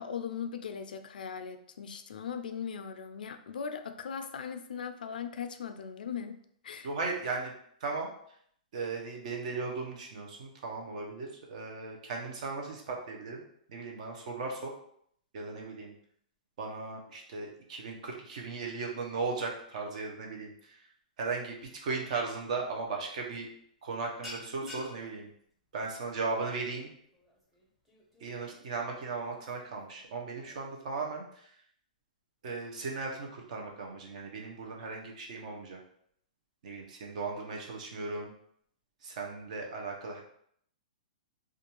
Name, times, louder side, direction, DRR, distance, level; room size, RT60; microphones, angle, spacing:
voice 1, 0.0-6.4 6.6-6.9 24.6-24.8, left 7 dB, 85° left, 8 dB, 0.3 m, -39 dB
voice 2, 6.8-7.5 7.8-8.1 8.7-13.4 13.7-14.7 15.3-15.9 16.6-20.8 21.2-23.5 23.8-25.3 25.7-26.9 28.2-31.5 32.4-35.8 36.6-38.3 39.0-40.2, right 4 dB, 55° right, 0 dB, 0.7 m, -37 dB
sound 1, 22.6-22.9 23.2-23.5 23.7-30.6, left 1 dB, ahead, 0.6 m, -51 dB
2.5 x 2.3 x 2.9 m, 0.67 s
hypercardioid pair, 155°, 5 cm